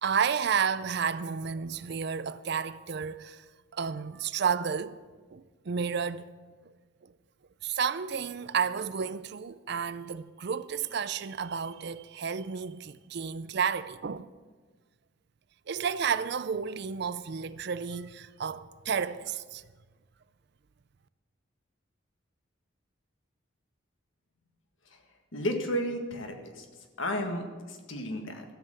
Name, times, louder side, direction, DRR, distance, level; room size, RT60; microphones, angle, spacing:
voice 1, 0.0-3.5 3.7-5.0 5.3-6.3 7.0-7.1 7.6-14.3 15.7-19.6, right 6 dB, 55° right, 0.4 m, -31 dB
voice 2, 25.3-26.7 27.0-28.4, equal, 70° left, 1.7 m, -33 dB
13.5 x 7.8 x 7.7 m
head